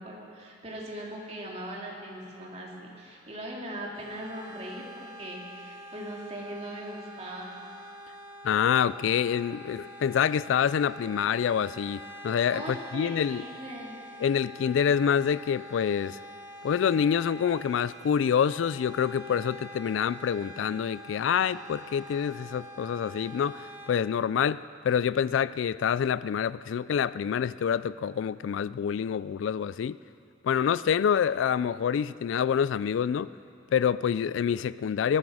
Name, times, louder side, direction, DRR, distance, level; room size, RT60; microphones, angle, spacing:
voice 1, 0.0-7.6 12.5-14.0, right 1 dB, 35° right, -3 dB, 2.6 m, -40 dB
sound 1, 3.9-23.9, equal, 50° right, 3.8 m, -46 dB
voice 2, 8.4-13.4 14.2-16.2 16.6-30.0 30.4-33.3 33.7-35.2, left 8 dB, 80° left, 17 dB, 0.3 m, -27 dB
20.5 x 13.5 x 4.9 m, 2.5 s
head